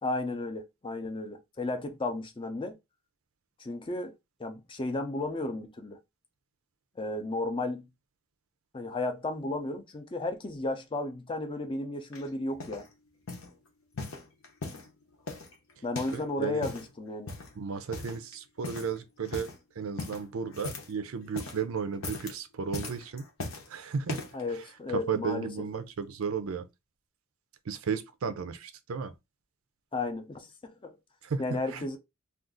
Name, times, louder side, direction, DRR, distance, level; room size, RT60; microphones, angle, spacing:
voice 1, 0.0-2.7 3.6-4.1 4.4-6.0 7.0-7.9 8.7-12.9 15.8-17.3 24.3-25.5 29.9-30.9 31.4-32.0, left 2 dB, 25° left, 0.5 m, -33 dB
sound 1, 12.1-12.9 13.3-13.5 13.9-14.9 15.3-16.3 16.5-16.9 17.3-17.6 17.9-18.3 18.6-19.0 19.2-19.6 20.0-21.0 21.2-21.6 21.9-22.4 22.7-23.7 24.1-24.4 25.1-25.2, left 3 dB, 75° left, 0.8 m, -39 dB
voice 2, 16.1-16.6 17.6-23.2 23.7-24.2 24.9-26.7 27.7-29.1 31.2-32.0, right 6 dB, 75° right, 0.5 m, -34 dB
2.5 x 2.4 x 3.6 m
head